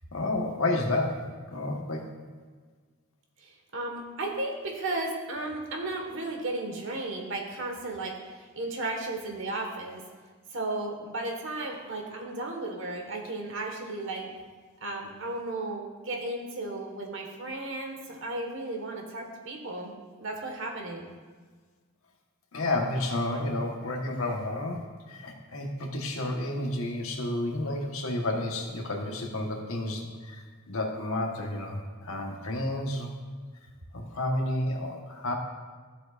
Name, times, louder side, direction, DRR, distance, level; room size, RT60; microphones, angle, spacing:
voice 1, 0.1-2.1 22.5-33.2 33.9-35.3, left 1 dB, 65° left, 1 dB, 1.3 m, -31 dB
voice 2, 3.4-10.0 10.5-14.3 14.8-19.9 20.2-21.1, right 2 dB, 60° right, 1 dB, 1.5 m, -34 dB
13.5 x 7.6 x 2.5 m, 1.5 s
head